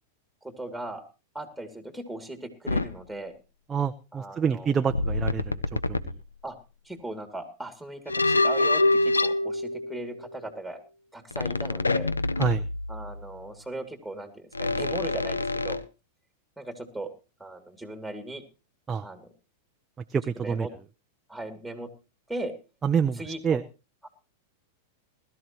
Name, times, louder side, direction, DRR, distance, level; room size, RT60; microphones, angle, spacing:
voice 1, 0.4-1.0 1.3-3.3 4.1-4.7 6.4-6.6 6.8-10.8 11.1-12.1 12.9-15.8 16.6-17.1 17.4-18.4 19.0-19.3 20.4-20.7 21.3-21.9 22.3-22.5 23.1-23.6 24.0-24.1, right 1 dB, ahead, 7 dB, 2.8 m, -38 dB
sound 1, 2.7-2.9 4.9-6.2 8.1-10.3 11.3-13.3 14.5-15.8, left 2 dB, 90° left, 0.7 m, -26 dB
voice 2, 3.7-6.0 12.4-12.6 18.9-19.1 20.1-20.7 22.8-23.6, right 6 dB, 20° right, 7 dB, 0.7 m, -27 dB
20.5 x 13.0 x 3.0 m, 0.31 s
figure-of-eight pair, 95°, 0 cm